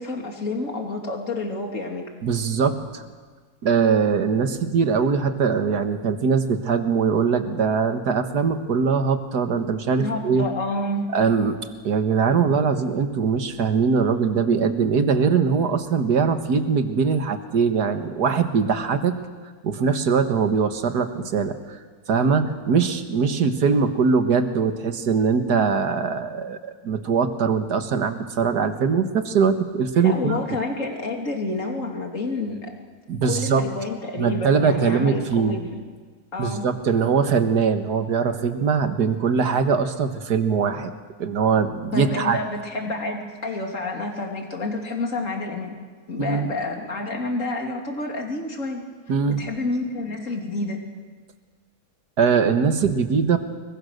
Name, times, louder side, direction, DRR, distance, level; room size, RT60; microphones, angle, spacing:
voice 1, 0.0-2.0 10.0-11.1 30.0-32.6 33.3-35.7 36.3-36.7 41.9-45.7 46.1-48.8 49.3-50.8, left 2 dB, 50° left, 2 dB, 3.5 m, -29 dB
voice 2, 2.2-3.0 3.6-10.4 11.1-11.6 11.8-19.2 19.6-21.8 22.1-30.4 33.1-33.6 34.2-35.6 36.4-40.9 41.2-42.4 46.2-46.5 49.1-49.4 52.2-53.4, right 5 dB, 80° right, 8 dB, 2.0 m, -21 dB
29.0 x 22.5 x 6.6 m, 1.5 s
omnidirectional pair, 1.7 m